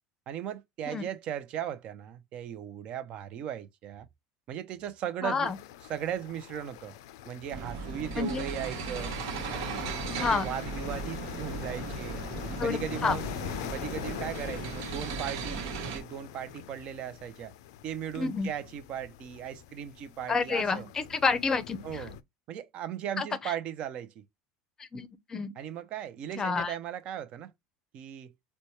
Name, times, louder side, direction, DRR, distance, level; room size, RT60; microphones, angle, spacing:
voice 1, 0.3-4.1 4.5-5.5 5.9-6.9 7.2-9.2 9.5-12.2 12.6-13.2 13.7-17.5 17.8-20.9 21.8-22.2 22.5-24.2 25.6-27.5 27.9-28.3, right 9 dB, 50° right, 0.6 m, -37 dB
voice 2, 5.2-5.6 8.2-8.4 10.1-10.4 12.6-13.2 18.2-18.5 20.3-22.0 23.2-23.3 24.9-25.5 26.4-26.7, left 4 dB, 25° left, 0.5 m, -29 dB
sound 1, 5.4-22.2, left 12 dB, 85° left, 0.4 m, -43 dB
sound 2, 7.5-16.0, right 4 dB, 80° right, 1.0 m, -37 dB
4.1 x 2.2 x 3.0 m
supercardioid pair, 115°, 2 cm